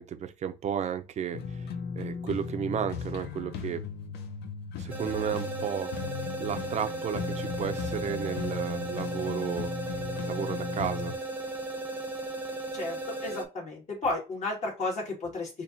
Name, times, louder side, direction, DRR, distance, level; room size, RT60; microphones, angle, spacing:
voice 1, 0.0-1.7 1.9-3.8 4.8-5.9 6.4-9.8 10.3-11.2, right 8 dB, 45° right, 0.6 m, -33 dB
sound 1, 1.3-11.1, left 6 dB, 80° left, 0.7 m, -36 dB
sound 2, 4.9-13.5, right 2 dB, 10° right, 0.9 m, -36 dB
voice 2, 12.7-15.6, left 2 dB, 45° left, 2.3 m, -33 dB
4.2 x 2.9 x 2.8 m
cardioid pair, 110°, 17 cm